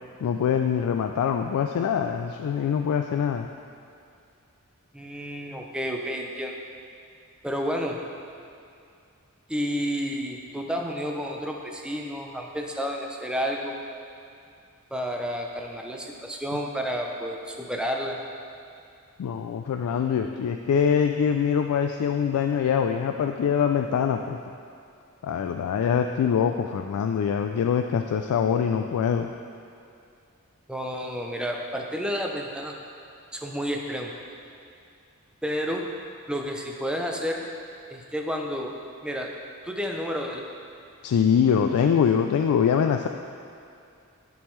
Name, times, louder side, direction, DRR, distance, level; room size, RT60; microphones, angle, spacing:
voice 1, 0.2-3.5 19.2-24.4 25.2-29.3 41.0-43.1, left 7 dB, 85° left, 6 dB, 0.3 m, -24 dB
voice 2, 4.9-6.6 7.4-8.0 9.5-13.7 14.9-18.2 30.7-32.7 33.3-34.1 35.4-35.9 36.3-37.4 37.9-38.7 39.0-39.3 39.6-40.4, equal, 5° right, 0 dB, 0.5 m, -30 dB
10.0 x 5.3 x 3.1 m, 2.5 s
head